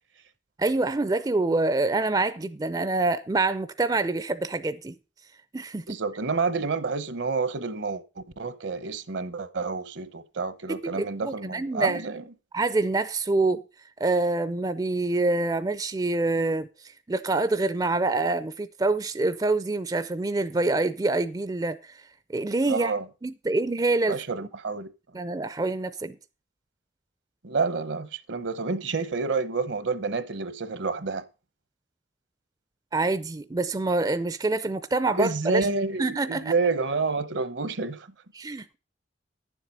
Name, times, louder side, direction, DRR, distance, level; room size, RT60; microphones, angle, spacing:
voice 1, 0.6-4.9 5.5-6.0 10.7-12.0 12.5-13.6 14.0-22.0 22.3-22.9 23.2-24.2 25.1-26.2 32.9-35.7 36.0-36.5 38.3-38.8, right 2 dB, 20° right, 0.4 m, -26 dB
voice 2, 5.9-8.0 8.4-12.2 22.7-23.0 24.1-24.9 27.4-31.2 35.2-38.1, right 4 dB, 70° right, 0.9 m, -29 dB
10.0 x 7.3 x 5.3 m
head